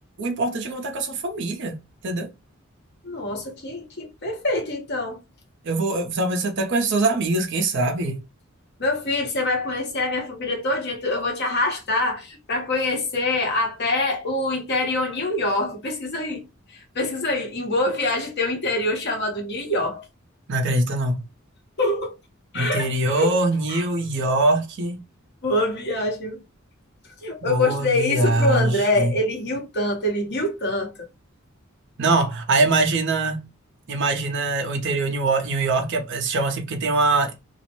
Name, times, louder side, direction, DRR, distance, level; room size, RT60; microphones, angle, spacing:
voice 1, 0.2-2.3 5.6-8.2 20.5-21.2 22.5-25.0 27.4-29.2 32.0-33.4 33.9-37.3, right 2 dB, 60° right, 0.6 m, -23 dB
voice 2, 3.0-5.2 8.8-20.0 21.8-22.1 22.5-23.3 23.7-23.8 25.4-26.4 27.2-31.1, left 2 dB, 55° left, 1.0 m, -25 dB
2.4 x 2.0 x 2.9 m
head